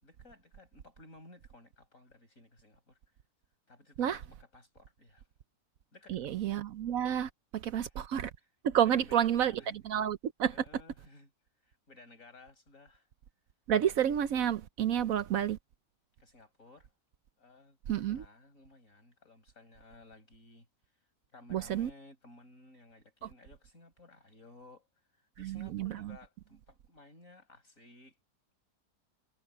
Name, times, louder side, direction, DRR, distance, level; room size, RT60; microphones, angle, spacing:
voice 1, 0.0-3.0 3.7-5.2 5.9-6.3 7.8-8.1 8.4-8.5 8.9-10.1 10.5-11.3 11.6-13.1 16.2-16.9 17.4-20.7 21.3-24.9 25.2-28.2, left 2 dB, 60° left, 6.7 m, -57 dB
voice 2, 6.1-8.3 8.6-10.5 13.7-15.6 17.9-18.2 21.5-21.9 25.4-26.1, right 9 dB, 65° right, 1.1 m, -30 dB
omnidirectional pair, 1.6 m